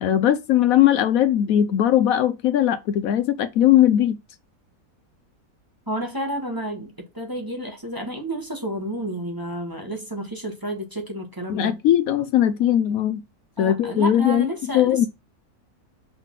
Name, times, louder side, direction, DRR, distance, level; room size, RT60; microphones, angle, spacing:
voice 1, 0.0-4.2 11.5-13.2 13.6-14.5 14.7-15.1, left 11 dB, 70° left, 1.0 m, -19 dB
voice 2, 5.9-11.8 13.6-15.1, right 1 dB, 15° right, 1.2 m, -31 dB
5.4 x 4.1 x 5.7 m
omnidirectional pair, 1.6 m